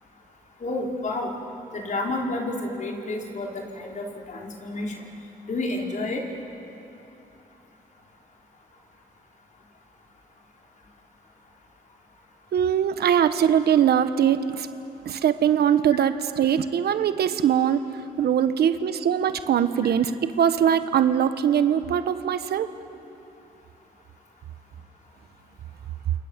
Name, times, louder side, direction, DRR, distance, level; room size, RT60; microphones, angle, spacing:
voice 1, 0.6-1.3 1.7-5.0 5.5-6.2, left 2 dB, 50° left, -1 dB, 5.5 m, -30 dB
voice 2, 12.5-14.7 15.0-22.7, right 9 dB, 70° right, 10 dB, 1.3 m, -22 dB
28.5 x 26.5 x 7.6 m, 2.9 s
cardioid pair, 70°, 17 cm